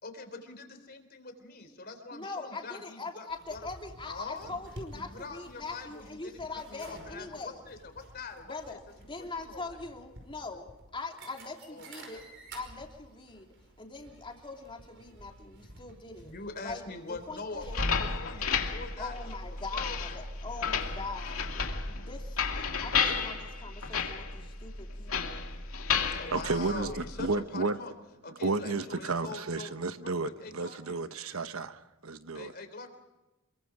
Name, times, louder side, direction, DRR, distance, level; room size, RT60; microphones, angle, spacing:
voice 1, 0.0-3.6 4.1-4.5 5.1-8.8 9.1-9.8 11.7-12.2 16.2-19.2 19.7-20.2 22.7-23.2 26.1-27.9 28.2-29.7 30.0-31.0 32.3-33.0, left 3 dB, 50° left, 3.6 m, -44 dB
voice 2, 2.1-7.6 8.5-12.2 12.5-16.3 16.6-17.8 19.0-25.5, left 3 dB, 25° left, 3.2 m, -42 dB
sound 1, 3.3-21.7, right 1 dB, 60° right, 5.2 m, -52 dB
sound 2, 17.6-27.3, left 5 dB, 90° left, 2.5 m, -33 dB
voice 3, 26.0-27.8 28.4-32.5, right 3 dB, 80° right, 1.1 m, -32 dB
27.5 x 23.0 x 5.0 m
head